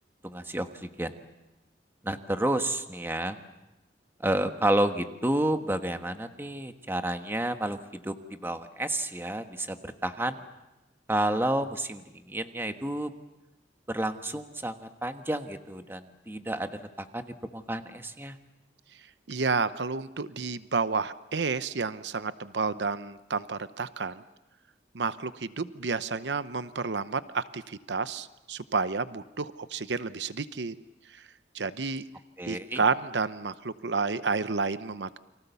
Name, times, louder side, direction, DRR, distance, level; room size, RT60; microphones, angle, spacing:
voice 1, 0.2-1.2 2.0-3.4 4.2-10.4 11.1-13.1 13.9-18.4 32.4-32.8, right 1 dB, 15° right, 7 dB, 1.3 m, -30 dB
voice 2, 19.3-24.2 24.9-30.7 31.5-32.0 32.5-35.2, right 4 dB, 85° right, 13 dB, 0.8 m, -30 dB
29.5 x 24.0 x 7.0 m, 0.97 s
head